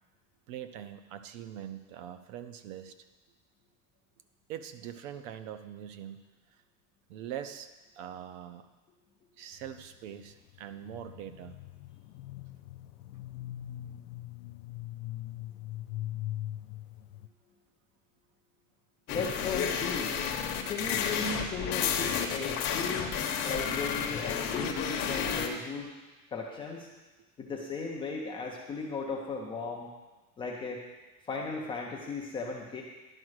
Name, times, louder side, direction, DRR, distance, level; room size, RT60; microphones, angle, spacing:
voice 1, 0.5-2.9 4.5-6.2 7.1-8.6 9.4-11.6, right 10 dB, 60° right, 9 dB, 0.8 m, -43 dB
sound 1, 9.5-17.3, left 14 dB, 80° left, 0.6 m, -41 dB
sound 2, 19.1-25.5, left 7 dB, 35° left, 0.9 m, -31 dB
voice 2, 19.1-20.2 20.7-23.1 23.4-25.9 26.3-26.9 27.4-29.9 30.4-30.8 31.3-32.8, left 4 dB, 15° left, -2 dB, 0.4 m, -36 dB
11.0 x 4.8 x 6.3 m, 1.2 s
supercardioid pair, 165°, 43 cm